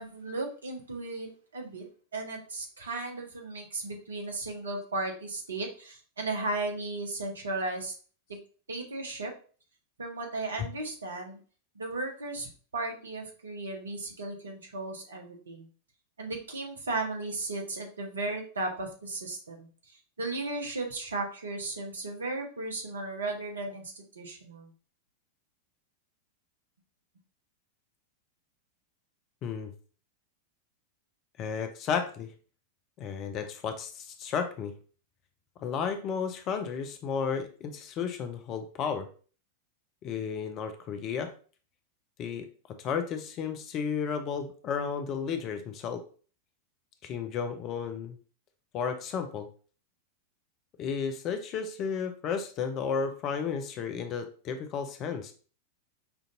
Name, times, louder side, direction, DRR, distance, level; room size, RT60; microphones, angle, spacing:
voice 1, 0.0-7.9 8.7-9.3 10.0-11.4 11.7-15.7 16.2-19.7 20.2-24.7, right 2 dB, 70° right, 2 dB, 1.0 m, -35 dB
voice 2, 29.4-29.7 31.4-32.3 33.0-34.7 35.6-39.1 40.0-41.3 42.2-42.5 42.8-46.0 47.0-48.2 48.7-49.5 50.8-55.3, left 6 dB, 35° left, 8 dB, 0.6 m, -33 dB
5.6 x 2.6 x 2.6 m, 0.40 s
figure-of-eight pair, 90°, 0 cm